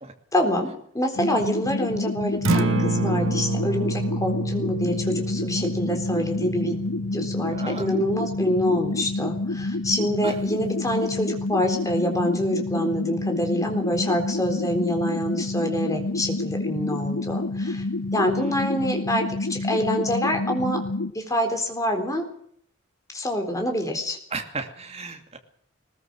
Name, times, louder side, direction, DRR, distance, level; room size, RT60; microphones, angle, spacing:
voice 1, 0.3-6.8 7.1-17.8 18.1-20.8 21.1-22.2 23.1-24.2, equal, 15° left, 4 dB, 3.9 m, -26 dB
sound 1, 1.2-21.1, left 2 dB, 85° left, 1.0 m, -28 dB
Acoustic guitar, 2.3-10.5, right 3 dB, 70° right, 1.2 m, -30 dB
voice 2, 7.5-7.9 10.2-10.4 18.3-18.5 24.3-25.4, right 3 dB, 30° right, 4 dB, 2.7 m, -35 dB
21.0 x 20.0 x 6.3 m, 0.66 s
head